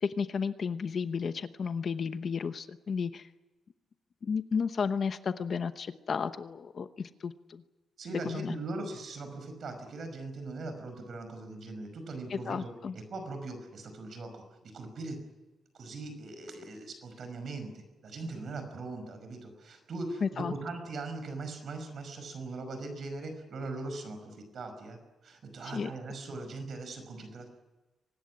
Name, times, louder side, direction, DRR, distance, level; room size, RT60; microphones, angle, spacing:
voice 1, 0.0-3.3 4.2-7.6 8.3-8.5 12.3-12.9 20.2-20.5 25.6-25.9, left 6 dB, 40° left, 10 dB, 0.9 m, -33 dB
voice 2, 8.0-15.2 15.7-27.5, right 3 dB, 45° right, 7 dB, 5.5 m, -40 dB
24.0 x 19.5 x 9.7 m, 1.1 s
wide cardioid pair, 170°, 0 cm